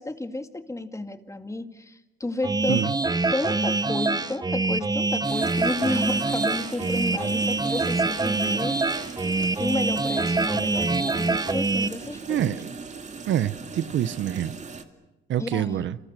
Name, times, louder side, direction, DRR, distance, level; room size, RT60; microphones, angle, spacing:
voice 1, 0.0-2.9 3.3-9.2 9.6-12.5 15.4-15.8, left 2 dB, 15° left, 2.1 m, -32 dB
sound 1, 2.4-11.9, right 3 dB, 20° right, 1.1 m, -25 dB
sound 2, 5.2-14.8, right 4 dB, 35° right, 2.5 m, -39 dB
voice 2, 12.3-12.7 13.3-14.5 15.3-16.0, right 11 dB, 70° right, 0.9 m, -26 dB
29.0 x 26.5 x 6.8 m
cardioid pair, 90°, 20 cm